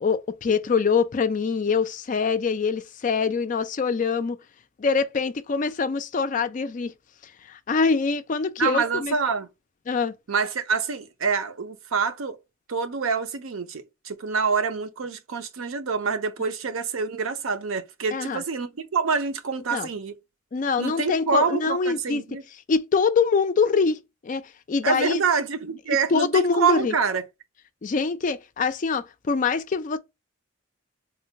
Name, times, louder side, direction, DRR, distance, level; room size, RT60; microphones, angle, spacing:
voice 1, 0.0-4.4 4.8-6.9 7.5-9.1 9.9-10.1 18.1-18.4 19.7-19.9 20.5-22.2 22.7-25.2 26.1-26.9 27.8-30.0, left 5 dB, 40° left, 0.3 m, -24 dB
voice 2, 8.6-9.5 10.3-12.4 12.7-20.1 20.8-22.4 24.8-27.2, right 5 dB, 85° right, 0.6 m, -26 dB
3.7 x 2.2 x 2.7 m
head